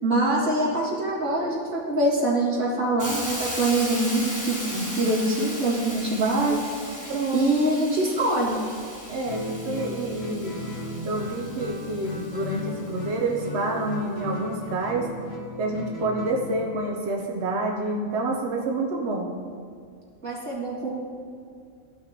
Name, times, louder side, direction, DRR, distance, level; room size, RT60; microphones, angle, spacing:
voice 1, 0.0-6.6 7.3-8.6 20.2-20.9, right 2 dB, 75° right, -7 dB, 2.5 m, -24 dB
Hiss, 3.0-12.9, equal, 15° left, 1.1 m, -37 dB
voice 2, 7.1-7.5 9.1-10.5 11.1-15.1 15.6-19.3, right 2 dB, 55° right, 1 dB, 1.0 m, -28 dB
Guitar, 9.2-16.7, left 2 dB, 50° left, 1.5 m, -36 dB
14.0 x 5.9 x 2.8 m, 2.3 s
omnidirectional pair, 1.5 m